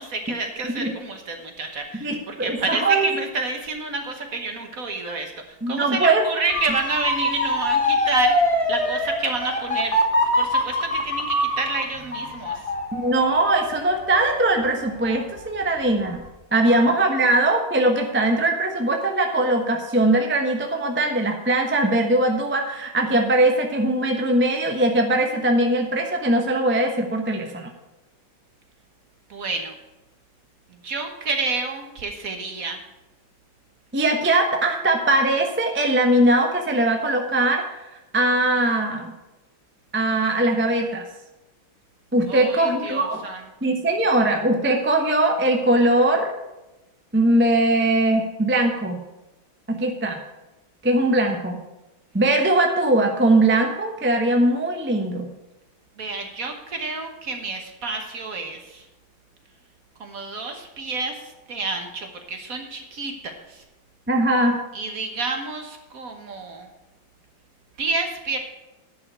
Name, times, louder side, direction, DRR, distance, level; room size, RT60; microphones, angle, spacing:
voice 1, 0.0-10.0 10.3-12.6 16.6-16.9 29.3-29.7 30.8-32.8 42.3-43.4 43.9-44.0 56.0-58.8 60.0-63.6 64.7-66.7 67.8-68.4, right 3 dB, 50° right, 4 dB, 1.5 m, -29 dB
voice 2, 2.0-3.1 5.6-6.2 12.9-16.2 16.5-27.7 33.9-37.6 38.1-39.1 39.9-41.0 42.1-43.2 43.6-46.3 47.1-49.0 49.7-50.2 50.8-51.6 52.1-55.3 64.1-64.6, right 1 dB, 10° right, 3 dB, 0.7 m, -20 dB
Motor vehicle (road) / Siren, 6.5-15.4 15.8-16.3, left 1 dB, 20° left, 1.0 m, -24 dB
10.5 x 5.6 x 8.0 m, 0.99 s
omnidirectional pair, 2.1 m